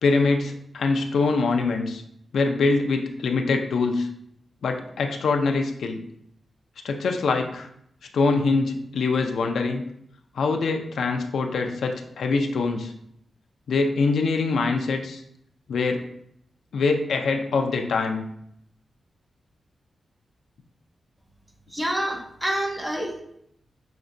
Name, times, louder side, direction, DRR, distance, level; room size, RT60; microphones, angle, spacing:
voice 1, 0.0-2.0 2.3-4.1 4.6-6.0 6.8-7.7 8.1-9.8 10.3-12.9 13.7-15.2 15.7-16.1 16.7-18.2, left 4 dB, 85° left, 4 dB, 0.4 m, -24 dB
voice 2, 21.7-23.2, right 1 dB, 10° right, 2 dB, 0.6 m, -27 dB
5.9 x 2.1 x 2.6 m, 0.72 s
wide cardioid pair, 135°, 0 cm